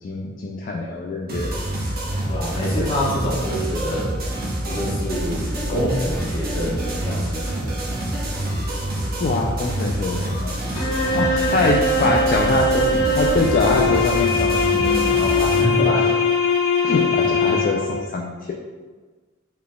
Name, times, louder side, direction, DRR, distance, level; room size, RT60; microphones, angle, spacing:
voice 1, 0.0-1.5 2.5-2.9 9.2-15.6 15.9-16.1 16.8-18.5, left 3 dB, 45° left, 0 dB, 0.3 m, -24 dB
sound 1, 1.3-15.6, right 1 dB, 50° right, 0.7 m, -27 dB
voice 2, 2.3-4.1 4.6-7.7 15.6-15.9, equal, 25° left, -6 dB, 1.0 m, -26 dB
sound 2, 10.7-18.0, left 3 dB, 85° left, 0.8 m, -21 dB
3.9 x 3.3 x 2.2 m, 1.4 s
head